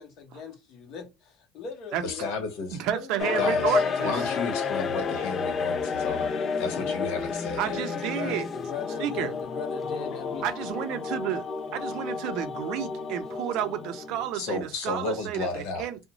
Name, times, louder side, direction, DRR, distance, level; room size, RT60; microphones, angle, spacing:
voice 1, 0.0-2.6 2.9-3.3 4.8-4.9 6.7-7.2 8.0-10.5, left 5 dB, 50° left, 0.9 m, -39 dB
voice 2, 2.0-2.8 3.4-7.8 14.3-15.9, left 4 dB, 80° left, 0.9 m, -33 dB
voice 3, 2.8-4.2 7.6-8.5 9.0-9.3 10.4-11.4 11.7-15.5 15.8-16.0, right 11 dB, 60° right, 0.5 m, -31 dB
sound 1, 3.2-14.5, left 5 dB, 30° left, 0.3 m, -30 dB
2.5 x 2.0 x 2.9 m
cardioid pair, 150°, 0 cm